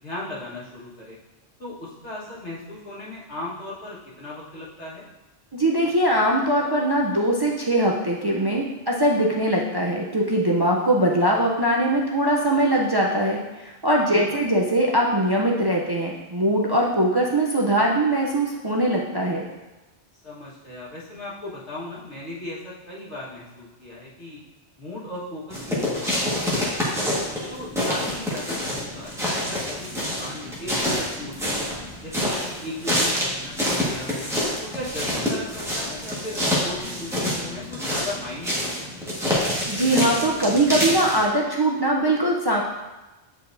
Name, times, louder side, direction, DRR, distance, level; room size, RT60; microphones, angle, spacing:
voice 1, 0.0-1.2 1.6-5.1 14.0-14.4 20.2-24.4 24.8-26.8 27.5-31.6 32.0-34.2 34.6-39.1, left 2 dB, 90° left, -7 dB, 1.9 m, -37 dB
voice 2, 5.5-19.5 39.7-42.6, right 1 dB, 30° right, -2 dB, 0.4 m, -21 dB
sound 1, 25.5-41.2, equal, 5° right, 1.4 m, -27 dB
8.5 x 4.6 x 2.6 m, 1.1 s
omnidirectional pair, 1.1 m